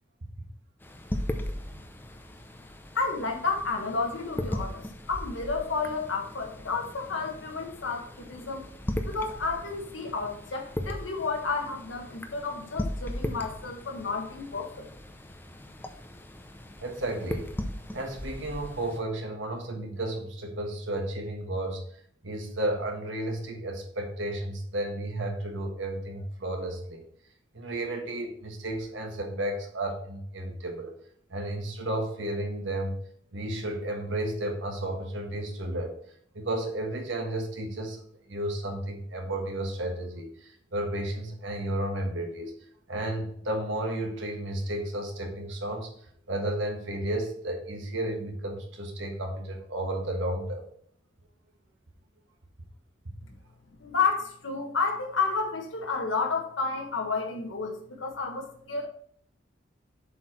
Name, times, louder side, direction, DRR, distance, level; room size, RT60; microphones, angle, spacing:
sound 1, 0.8-19.0, left 1 dB, 10° left, 0.6 m, -38 dB
voice 1, 2.9-8.6 9.0-14.9 53.8-58.9, left 4 dB, 80° left, 3 dB, 1.4 m, -31 dB
voice 2, 16.8-17.5 17.9-21.8 22.2-27.0 27.5-30.9 31.3-32.9 33.3-35.9 36.3-38.0 38.3-42.5 42.9-45.9 46.3-50.6, right 1 dB, 75° right, 3 dB, 1.5 m, -32 dB
7.3 x 4.6 x 4.3 m, 0.63 s
head